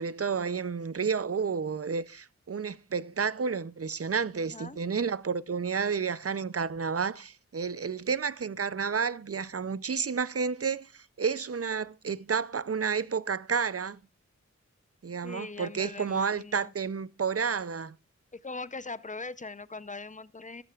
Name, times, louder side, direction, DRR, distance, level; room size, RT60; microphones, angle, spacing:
voice 1, 0.0-14.0 15.0-18.0, right 6 dB, 50° right, 0.5 m, -31 dB
voice 2, 15.2-16.7 18.3-20.6, left 3 dB, 25° left, 0.6 m, -41 dB
14.0 x 12.0 x 2.4 m
wide cardioid pair, 50°, 30 cm